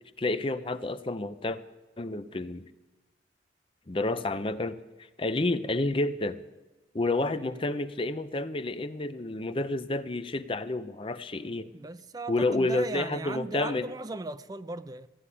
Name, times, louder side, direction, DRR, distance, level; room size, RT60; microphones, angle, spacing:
voice 1, 0.2-1.6 2.0-2.6 3.9-4.8 5.2-6.4 6.9-11.7 12.3-13.9, left 2 dB, 30° left, 0.6 m, -29 dB
voice 2, 11.7-15.1, right 2 dB, 20° right, 0.4 m, -38 dB
14.0 x 9.7 x 9.9 m
head